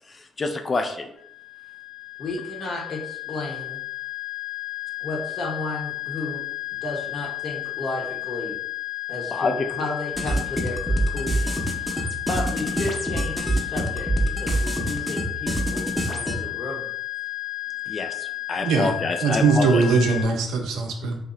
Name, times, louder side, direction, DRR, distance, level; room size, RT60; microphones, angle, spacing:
voice 1, 0.1-1.1 9.3-9.9 17.9-19.8, left 3 dB, 40° left, 6 dB, 0.3 m, -27 dB
sound 1, 1.2-20.3, left 19 dB, 90° left, 0.8 m, -33 dB
voice 2, 2.2-3.8 5.0-6.4 6.8-8.6 9.1-16.8, left 2 dB, 55° left, -2 dB, 0.8 m, -33 dB
sound 2, 10.2-16.4, right 1 dB, 5° right, 0.6 m, -26 dB
voice 3, 18.6-18.9 19.2-21.2, right 4 dB, 75° right, 3 dB, 0.4 m, -21 dB
2.7 x 2.0 x 2.4 m, 0.73 s
hypercardioid pair, 45°, 0 cm